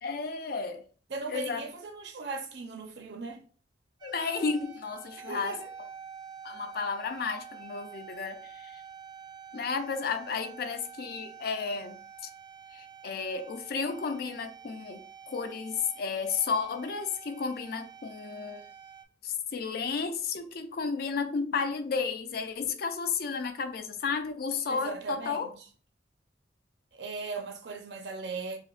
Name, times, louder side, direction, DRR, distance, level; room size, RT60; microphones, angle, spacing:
voice 1, 0.0-0.8 1.3-1.6 4.0-5.6 6.4-8.8 9.5-12.3 12.7-18.7 19.2-25.5, left 5 dB, 55° left, 0.4 m, -33 dB
voice 2, 1.1-3.4 5.3-5.7 24.7-25.5 26.9-28.6, right 4 dB, 70° right, 0.6 m, -38 dB
sound 1, 4.0-19.0, right 7 dB, 25° right, 0.4 m, -48 dB
4.9 x 2.1 x 2.4 m
head